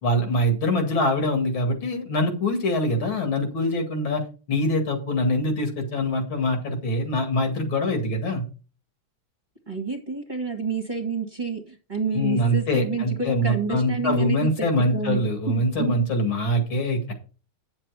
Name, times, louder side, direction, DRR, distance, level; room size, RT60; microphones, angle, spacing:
voice 1, 0.0-8.4 12.1-17.1, left 1 dB, 65° left, 4 dB, 2.8 m, -24 dB
voice 2, 9.7-14.5 14.9-15.9, right 5 dB, 25° right, 3 dB, 1.6 m, -29 dB
9.4 x 7.4 x 4.8 m, 0.36 s
omnidirectional pair, 2.4 m